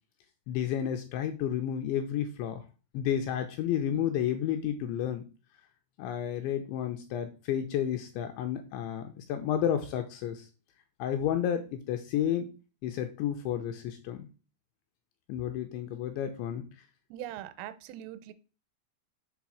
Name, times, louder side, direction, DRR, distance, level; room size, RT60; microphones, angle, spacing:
voice 1, 0.5-2.6 2.9-5.3 6.0-10.5 11.0-12.5 12.8-14.3 15.3-16.7, left 10 dB, 85° left, 6 dB, 2.7 m, -31 dB
voice 2, 17.1-18.3, right 12 dB, 85° right, 13 dB, 3.1 m, -41 dB
7.3 x 3.4 x 6.2 m, 0.33 s
omnidirectional pair, 5.8 m